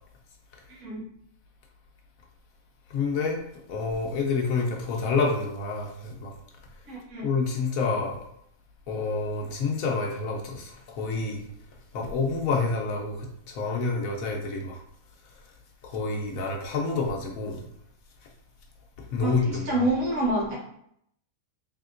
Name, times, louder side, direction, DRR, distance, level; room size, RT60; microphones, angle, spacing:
voice 1, 0.7-1.0 6.9-7.3 19.2-19.3 19.6-20.6, right 1 dB, 70° right, -3 dB, 1.5 m, -27 dB
voice 2, 2.9-3.4 3.7-6.3 7.2-8.2 8.9-11.4 11.9-14.8 15.8-17.6 19.1-19.8, left 4 dB, 70° left, 1 dB, 1.1 m, -28 dB
3.5 x 3.5 x 2.5 m, 0.71 s
omnidirectional pair, 1.5 m